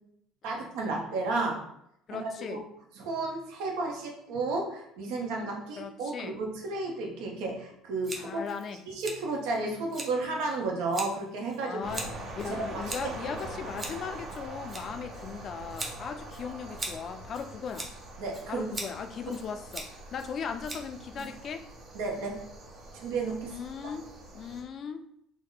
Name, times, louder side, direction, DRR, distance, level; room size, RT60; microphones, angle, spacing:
voice 1, 0.4-1.6 2.1-2.6 2.9-8.5 8.9-11.8 12.5-12.8 18.2-18.6 19.3-19.4 21.2-21.3 21.9-22.4 22.9-23.6, right 3 dB, 85° right, 0 dB, 0.8 m, -32 dB
voice 2, 2.1-2.6 5.8-6.3 8.2-8.8 11.6-12.1 12.4-17.9 18.5-21.7 23.4-24.1 24.3-25.0, left 6 dB, 40° left, 8 dB, 0.3 m, -38 dB
Scissors, 8.0-21.7, right 2 dB, 15° right, 0.7 m, -43 dB
sound 1, 11.8-24.6, right 1 dB, 50° right, 1.2 m, -44 dB
3.5 x 2.1 x 3.9 m, 0.76 s
cardioid pair, 130°, 0 cm